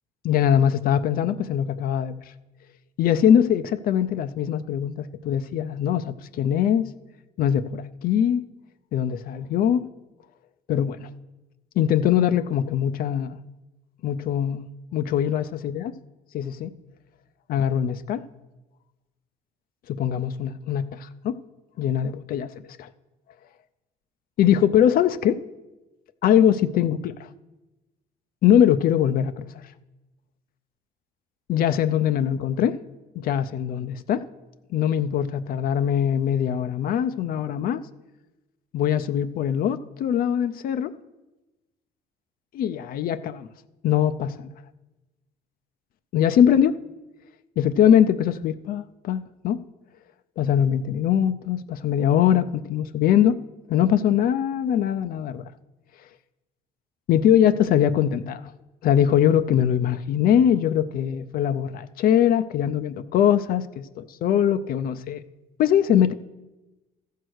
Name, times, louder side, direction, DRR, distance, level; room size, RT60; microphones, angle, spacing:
voice 1, 0.2-2.1 3.0-6.9 7.4-8.4 8.9-9.9 10.7-11.1 11.8-13.4 14.0-14.7 14.9-15.9 16.3-16.7 17.5-18.2 19.9-21.4 21.8-22.5 22.8-22.9 24.4-25.4 26.2-27.3 28.4-29.5 31.5-32.8 33.1-34.2 34.7-37.8 38.7-40.9 42.5-43.5 43.8-44.5 46.1-46.8 47.6-49.6 50.4-53.4 53.7-55.5 57.1-58.5 58.8-65.2 65.6-66.1, left 9 dB, 60° left, 11 dB, 0.5 m, -22 dB
14.0 x 4.6 x 6.3 m, 1.1 s
cardioid pair, 110°, 17 cm